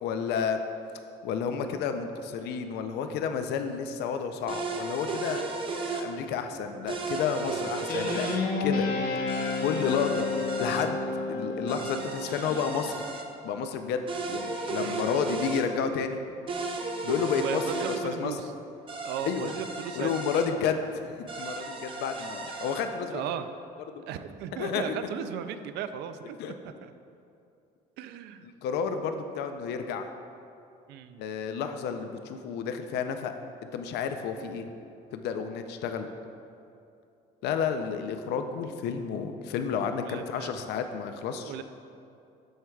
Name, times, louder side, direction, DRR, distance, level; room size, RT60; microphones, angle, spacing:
voice 1, 0.0-0.6 1.2-8.3 8.6-8.9 9.6-10.3 10.6-11.0 11.3-13.0 13.4-16.2 17.0-18.4 19.2-19.5 20.0-23.2 24.6-25.0 26.4-26.5 28.6-30.1 31.2-33.3 33.7-34.7 35.1-36.1 37.4-41.5, left 6 dB, 80° left, 7 dB, 0.5 m, -31 dB
sound 1, 4.5-6.1 6.9-8.4 9.3-10.9 11.7-13.3 14.1-15.7 16.5-18.0 18.9-20.5 21.3-22.9, right 3 dB, 30° right, 0.7 m, -35 dB
voice 2, 7.4-7.9 14.8-15.3 17.3-18.5 19.0-20.1 23.1-23.5 24.1-26.9 28.0-28.5 30.9-31.2 40.0-40.8 41.4-41.6, right 8 dB, 85° right, 10 dB, 0.4 m, -37 dB
Guitar, 7.9-12.6, left 4 dB, 65° left, 1.0 m, -31 dB
13.0 x 4.5 x 2.3 m, 2.6 s
cardioid pair, 110°, 17 cm